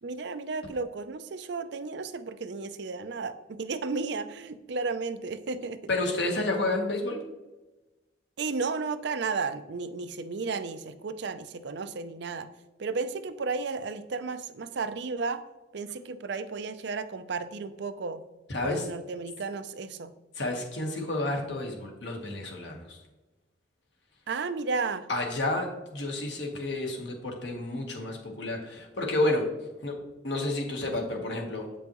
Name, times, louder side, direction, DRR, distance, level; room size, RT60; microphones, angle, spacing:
voice 1, 0.0-5.8 8.4-12.5 12.8-15.4 15.7-18.2 18.6-20.1 24.3-25.1, right 4 dB, 65° right, 12 dB, 0.5 m, -33 dB
voice 2, 5.9-7.2 18.5-18.8 20.4-23.0 25.1-29.5 29.8-30.0 30.2-31.7, left 2 dB, 65° left, 1 dB, 1.4 m, -30 dB
8.5 x 5.4 x 3.0 m, 1.1 s
head